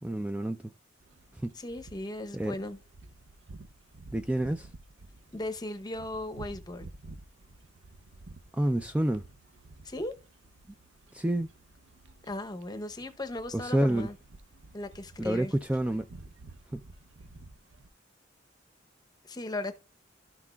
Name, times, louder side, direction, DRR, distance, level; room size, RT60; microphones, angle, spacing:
voice 1, 0.0-0.7 1.3-1.5 2.3-2.5 4.1-4.7 8.5-9.2 11.1-11.5 13.5-14.1 15.2-16.1 16.7-16.8, right 1 dB, 5° right, 0.3 m, -28 dB
sound 1, 1.0-17.9, right 2 dB, 75° right, 0.6 m, -52 dB
voice 2, 1.5-2.8 5.3-6.9 9.8-10.1 12.2-14.1 14.7-15.5 19.2-19.7, left 1 dB, 20° left, 0.7 m, -37 dB
12.5 x 6.0 x 2.3 m
head